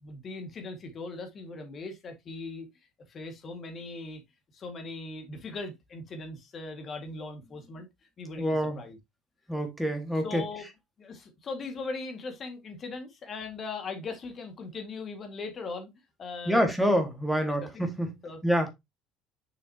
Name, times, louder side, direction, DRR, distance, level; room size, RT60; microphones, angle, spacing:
voice 1, 0.0-2.7 3.1-4.2 4.5-7.9 8.2-9.0 10.2-10.7 11.0-15.9 16.2-16.6 17.6-17.8 18.2-18.4, left 3 dB, 35° left, 1.9 m, -39 dB
voice 2, 8.4-8.8 9.5-10.4 16.5-18.1 18.4-18.7, equal, ahead, 1.7 m, -26 dB
6.5 x 6.3 x 2.8 m
cardioid pair, 140°, 0 cm